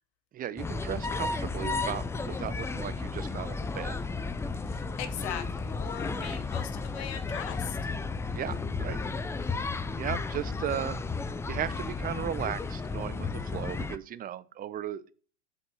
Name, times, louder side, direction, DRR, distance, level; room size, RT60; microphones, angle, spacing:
voice 1, 0.3-4.0 6.1-6.4 8.3-9.0 10.0-11.0 11.4-15.1, right 10 dB, 25° right, 0.8 m, -36 dB
sound 1, 0.6-14.0, left 4 dB, 5° left, 0.5 m, -33 dB
voice 2, 4.7-7.8, left 10 dB, 60° left, 1.9 m, -40 dB
7.8 x 5.4 x 7.0 m
hypercardioid pair, 110°, 36 cm